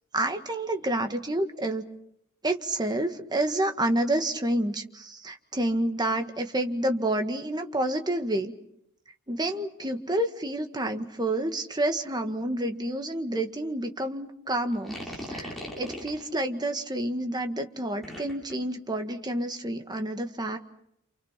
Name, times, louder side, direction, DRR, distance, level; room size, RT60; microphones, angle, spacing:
voice 1, 0.1-1.8 2.4-8.5 9.3-20.6, right 1 dB, 20° right, 6 dB, 1.7 m, -29 dB
sound 1, 14.7-16.3 18.0-18.5, equal, ahead, 6.2 m, -38 dB
28.5 x 28.0 x 5.9 m, 0.75 s
head